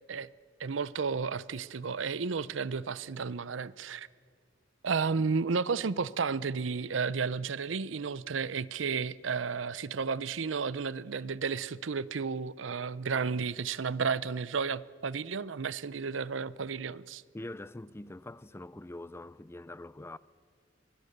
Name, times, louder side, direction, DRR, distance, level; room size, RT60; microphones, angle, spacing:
voice 1, 0.6-4.1 4.8-17.2, right 5 dB, 90° right, 0.6 m, -32 dB
voice 2, 17.3-20.2, left 1 dB, 15° left, 0.5 m, -44 dB
24.5 x 20.0 x 6.7 m
head